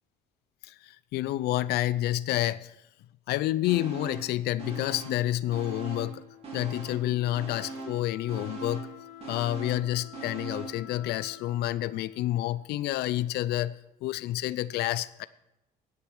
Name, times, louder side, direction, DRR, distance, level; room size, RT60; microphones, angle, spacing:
voice 1, 0.6-2.7 3.3-6.2 6.5-8.9 9.3-13.7 14.0-15.3, left 14 dB, 75° left, 17 dB, 0.4 m, -29 dB
sound 1, 3.7-4.3 4.6-6.2 6.4-10.8 11.2-11.3, right 3 dB, 35° right, 3.5 m, -41 dB
Wind instrument woodwind instrument, 4.8-13.5, left 11 dB, 60° left, 3.1 m, -50 dB
17.5 x 6.7 x 4.7 m, 0.88 s
cardioid pair, 110°, 17 cm